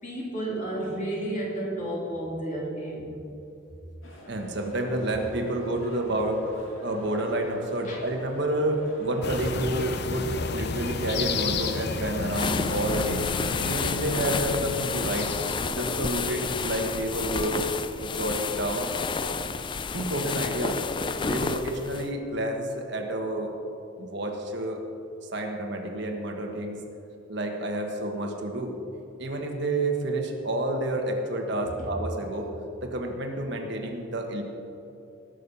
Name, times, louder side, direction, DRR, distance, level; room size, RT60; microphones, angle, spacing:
voice 1, 0.0-3.1 7.8-8.1 31.8-31.9, right 1 dB, 40° left, -4 dB, 3.2 m, -32 dB
sound 1, 4.0-10.2, left 1 dB, 75° left, 2.1 m, -46 dB
voice 2, 4.3-6.5 6.8-13.2 13.6-15.3 15.7-17.7 18.0-18.9 19.9-20.8 21.2-23.5 24.0-24.8 25.3-26.8 27.3-28.7 29.2-32.5 32.8-34.4, right 1 dB, 60° right, 2 dB, 1.4 m, -29 dB
sound 2, 9.2-15.6, left 3 dB, 55° left, 0.7 m, -31 dB
sound 3, 12.3-22.1, left 5 dB, 25° left, 0.3 m, -30 dB
19.5 x 6.6 x 5.4 m, 2.8 s
head